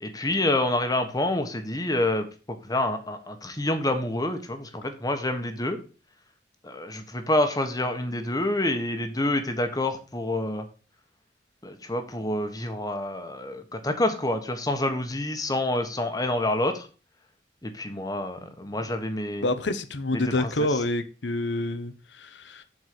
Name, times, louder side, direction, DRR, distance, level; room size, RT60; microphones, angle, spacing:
voice 1, 0.0-2.3 2.6-5.8 6.6-10.6 11.6-16.9 17.6-19.5 20.1-20.7, left 1 dB, 20° left, 1.3 m, -27 dB
voice 2, 19.4-22.6, left 2 dB, 80° left, 0.9 m, -28 dB
7.9 x 4.6 x 6.7 m
head